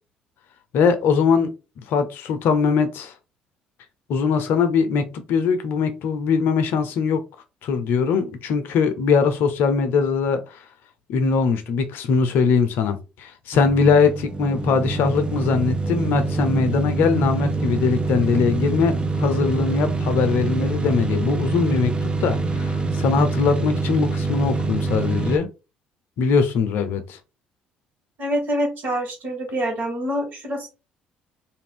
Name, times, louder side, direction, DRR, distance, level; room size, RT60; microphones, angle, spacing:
voice 1, 0.7-1.5 1.8-3.1 4.1-7.2 7.6-10.6 11.1-25.5 26.2-27.2, left 5 dB, 65° left, 0.6 m, -21 dB
sound 1, 13.5-25.4, right 3 dB, 25° right, 0.7 m, -25 dB
voice 2, 28.2-30.7, equal, 50° right, 1.7 m, -26 dB
2.6 x 2.5 x 3.5 m
hypercardioid pair, 55°, 4 cm